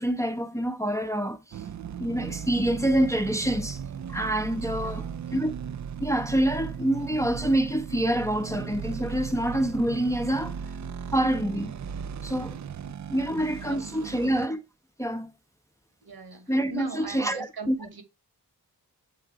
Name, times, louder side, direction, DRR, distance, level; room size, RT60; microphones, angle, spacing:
voice 1, 0.0-1.6 2.0-3.8 4.1-5.0 5.3-5.5 6.0-10.6 11.1-11.7 12.2-12.6 13.1-14.6 15.0-15.3 16.5-17.8, right 1 dB, 10° left, 0.6 m, -26 dB
sound 1, 1.5-14.5, right 7 dB, 50° right, 0.4 m, -37 dB
voice 2, 4.8-5.2 13.2-14.4 16.0-18.0, right 3 dB, 75° right, 2.0 m, -41 dB
7.6 x 3.8 x 4.6 m
wide cardioid pair, 85°, 38 cm